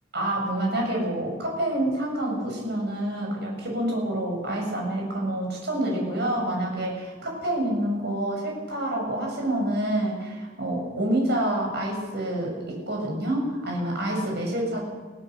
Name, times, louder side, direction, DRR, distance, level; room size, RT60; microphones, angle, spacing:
voice 1, 0.1-14.8, right 1 dB, 60° right, -1 dB, 7.2 m, -27 dB
24.0 x 16.5 x 6.6 m, 1.3 s
head